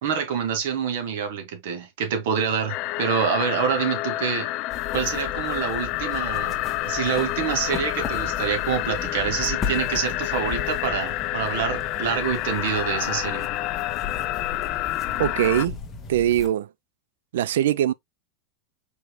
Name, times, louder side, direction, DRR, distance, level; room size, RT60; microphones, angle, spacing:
voice 1, 0.0-4.5 4.9-6.6 6.8-13.5, right 7 dB, 65° right, 2.0 m, -26 dB
sound 1, 2.7-15.7, left 17 dB, 40° left, 0.3 m, -29 dB
sound 2, 4.7-16.5, left 5 dB, 20° left, 1.0 m, -36 dB
voice 2, 15.2-15.8 16.1-16.7 17.3-17.9, right 12 dB, 85° right, 0.4 m, -22 dB
5.1 x 4.7 x 2.2 m
supercardioid pair, 155°, 0 cm